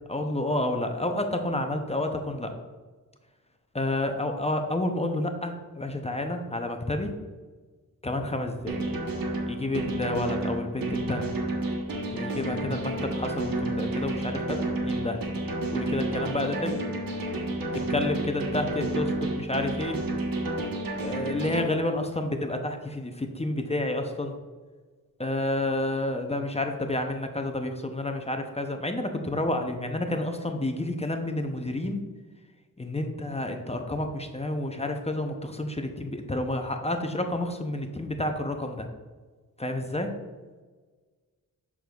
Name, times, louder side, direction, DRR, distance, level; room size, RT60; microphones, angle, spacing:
voice 1, 0.1-2.5 3.7-7.1 8.0-8.8 9.5-11.3 12.1-15.2 15.7-16.8 17.9-20.0 21.0-24.3 25.2-32.0 32.8-38.9 39.6-40.1, left 1 dB, 20° left, 5 dB, 0.6 m, -30 dB
sound 1, 8.7-21.6, right 2 dB, 75° right, 1.1 m, -30 dB
6.8 x 6.0 x 2.3 m, 1.4 s
wide cardioid pair, 85°, 35 cm